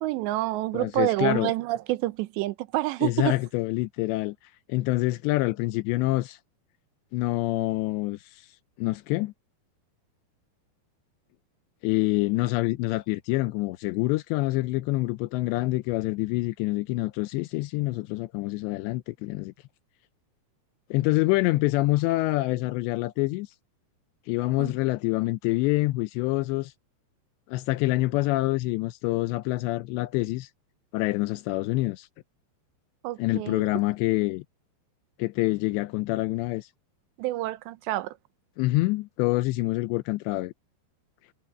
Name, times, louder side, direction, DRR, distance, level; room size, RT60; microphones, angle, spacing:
voice 1, 0.0-3.4 24.6-24.7 33.0-33.6 37.2-38.1, right 17 dB, 85° right, 3.0 m, -28 dB
voice 2, 0.7-1.5 3.0-4.4 4.7-6.4 7.1-8.5 8.8-9.3 11.8-19.5 20.9-23.5 24.3-26.7 27.5-30.5 30.9-32.1 33.2-34.4 35.2-36.7 38.6-40.5, left 19 dB, 85° left, 2.9 m, -26 dB
omnidirectional pair, 5.0 m